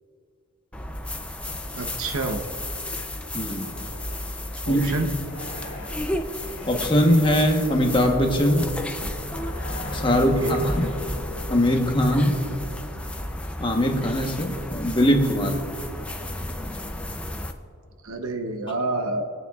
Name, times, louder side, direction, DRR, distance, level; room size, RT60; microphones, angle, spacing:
sound 1, 0.7-17.5, left 1 dB, 5° left, 0.4 m, -33 dB
voice 1, 1.8-2.4 4.7-5.1 10.2-10.7 18.0-19.2, right 2 dB, 75° right, 6 dB, 0.8 m, -28 dB
voice 2, 3.3-3.7 4.7-4.9 6.7-8.7 9.9-10.9 11.5-12.4 13.6-15.6, equal, 20° left, 2 dB, 1.0 m, -21 dB
sound 2, 3.6-13.4, left 1 dB, 60° left, 2.1 m, -41 dB
24.5 x 9.1 x 2.4 m, 2.4 s
head